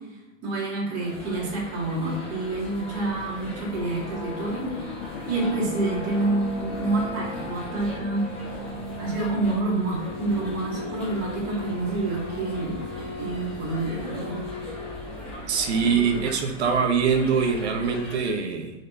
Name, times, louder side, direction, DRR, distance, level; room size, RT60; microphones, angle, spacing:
voice 1, 0.4-4.9 5.3-8.3 9.0-12.8 13.2-14.5 15.8-15.9 16.3-16.4, right 2 dB, 35° right, -6 dB, 2.7 m, -28 dB
sound 1, 1.0-18.3, left 1 dB, 5° left, 1.2 m, -39 dB
sound 2, 1.7-15.5, left 1 dB, 30° left, 1.8 m, -38 dB
sound 3, 3.0-11.2, left 7 dB, 90° left, 0.8 m, -41 dB
voice 2, 15.5-18.7, right 6 dB, 60° right, 5 dB, 1.2 m, -23 dB
9.1 x 4.4 x 4.1 m, 1.0 s
supercardioid pair, 180°, 38 cm